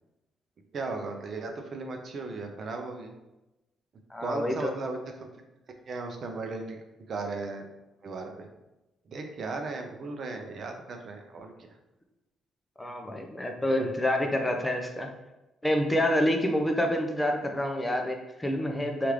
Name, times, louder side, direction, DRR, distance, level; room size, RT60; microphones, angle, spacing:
voice 1, 0.7-3.1 4.2-5.3 5.9-6.8 7.1-7.7 8.0-8.5 9.1-11.5 13.8-13.9, right 3 dB, 55° right, 4 dB, 0.5 m, -36 dB
voice 2, 4.1-4.7 12.8-15.1 15.6-19.1, left 1 dB, 10° left, 3 dB, 0.5 m, -27 dB
3.2 x 2.4 x 3.0 m, 0.98 s
cardioid pair, 90°, 0 cm